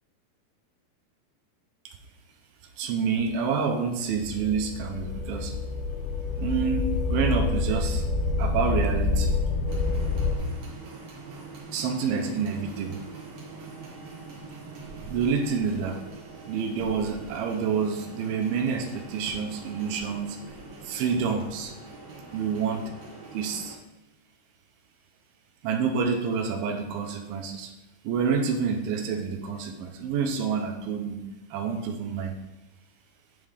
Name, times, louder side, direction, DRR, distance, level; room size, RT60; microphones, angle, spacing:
voice 1, 2.8-5.6 6.4-8.1 8.4-9.4 11.7-13.1 15.1-16.1 16.5-20.4 20.8-21.7 22.3-22.8 23.3-23.8 25.6-27.7 28.0-31.2 31.5-32.3, right 6 dB, 85° right, 4 dB, 2.4 m, -28 dB
sound 1, 4.2-10.3, left 3 dB, 80° left, 1.9 m, -27 dB
sound 2, 9.7-23.7, right 3 dB, 65° right, 1.4 m, -43 dB
9.7 x 3.6 x 3.3 m, 0.98 s
omnidirectional pair, 4.3 m